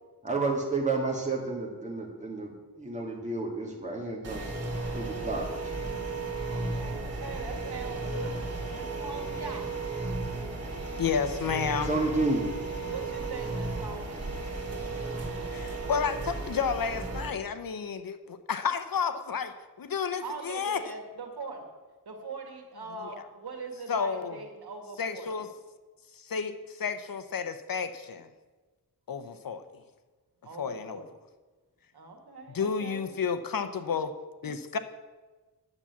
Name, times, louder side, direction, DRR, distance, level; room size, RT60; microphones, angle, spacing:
voice 1, 0.2-4.5 4.9-5.4 11.8-12.5, right 3 dB, 20° right, -1 dB, 2.3 m, -30 dB
sound 1, 4.2-17.3, right 3 dB, 40° right, 2.2 m, -34 dB
voice 2, 6.5-9.7 12.8-14.2 20.2-21.7 22.1-25.4 30.4-31.0 31.9-33.1, right 4 dB, 80° right, 3 dB, 2.1 m, -41 dB
voice 3, 11.0-11.9 15.5-20.9 23.0-23.2 23.9-24.4 25.0-25.5 26.1-28.3 29.1-29.6 30.6-31.0 32.5-34.1 34.4-34.8, left 6 dB, 60° left, 10 dB, 0.8 m, -31 dB
9.9 x 7.3 x 8.3 m, 1.3 s
wide cardioid pair, 155°, 38 cm